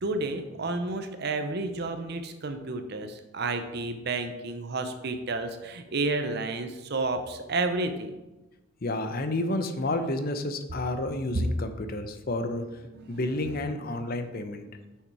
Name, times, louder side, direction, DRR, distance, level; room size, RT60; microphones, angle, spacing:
voice 1, 0.0-8.2 12.9-13.2 13.8-14.0, right 3 dB, 50° right, 7 dB, 0.6 m, -31 dB
voice 2, 8.8-12.6 13.1-14.7, left 2 dB, 45° left, 8 dB, 0.7 m, -30 dB
6.5 x 6.0 x 4.8 m, 1.1 s
head